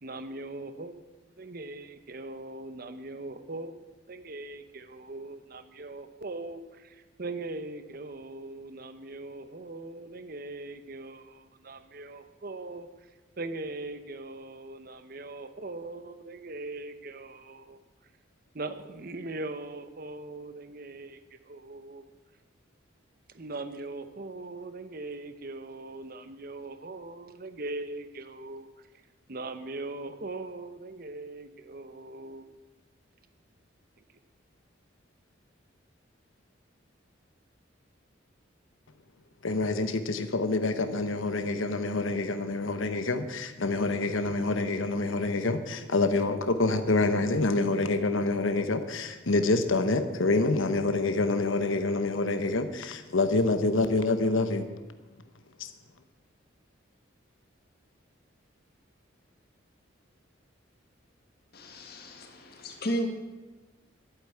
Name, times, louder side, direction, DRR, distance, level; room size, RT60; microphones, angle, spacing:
voice 1, 0.0-1.0 1.4-3.8 4.1-13.1 13.4-17.8 18.5-22.1 23.3-28.9 29.3-32.5, right 2 dB, 45° right, 0.8 m, -40 dB
voice 2, 39.4-54.7 55.6-55.7, left 2 dB, 85° left, 1.0 m, -27 dB
voice 3, 61.5-63.1, equal, 50° left, 1.9 m, -34 dB
12.0 x 8.3 x 9.7 m
head